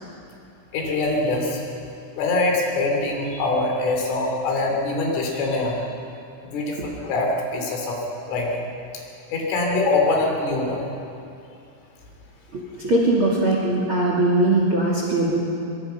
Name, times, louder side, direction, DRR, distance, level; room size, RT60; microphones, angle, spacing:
voice 1, 0.7-1.6 2.2-5.8 6.4-8.0 8.3-8.7 9.3-10.8, left 2 dB, 70° left, 0 dB, 5.7 m, -23 dB
voice 2, 12.5-15.4, right 2 dB, 35° right, -2 dB, 2.4 m, -20 dB
24.5 x 22.0 x 5.8 m, 2.6 s
omnidirectional pair, 6.0 m